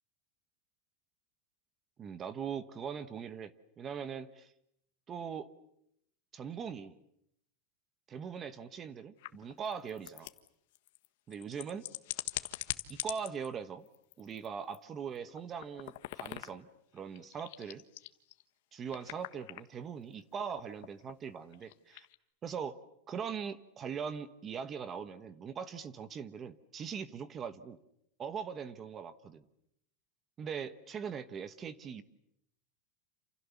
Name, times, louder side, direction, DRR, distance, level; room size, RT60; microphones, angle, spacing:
voice 1, 2.0-4.5 5.1-5.5 6.3-7.0 8.1-10.3 11.3-11.8 12.9-13.9 14.2-16.7 16.9-17.8 18.7-22.1 22.4-22.8 23.1-27.8 28.2-29.4 30.4-32.0, right 7 dB, 20° right, 13 dB, 1.1 m, -41 dB
sound 1, 9.2-13.5 13.9-14.5 14.7-14.8 15.1-16.7 17.0-18.4 18.9-19.6 20.1-22.1, left 17 dB, 60° left, 1.5 m, -43 dB
28.5 x 28.0 x 7.1 m, 0.76 s
supercardioid pair, 170°, 0 cm